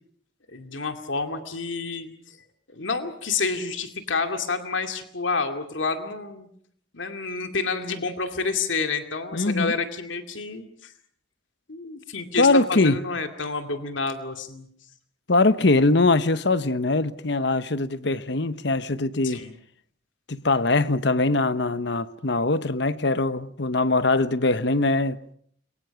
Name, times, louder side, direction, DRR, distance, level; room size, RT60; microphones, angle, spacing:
voice 1, 0.5-2.4 2.7-6.5 6.9-10.9 11.7-14.7 19.2-19.5, left 4 dB, 80° left, 2.3 m, -29 dB
voice 2, 9.3-9.7 12.4-13.0 15.3-19.4 20.3-25.2, left 2 dB, 60° left, 1.0 m, -22 dB
29.5 x 23.0 x 5.9 m
head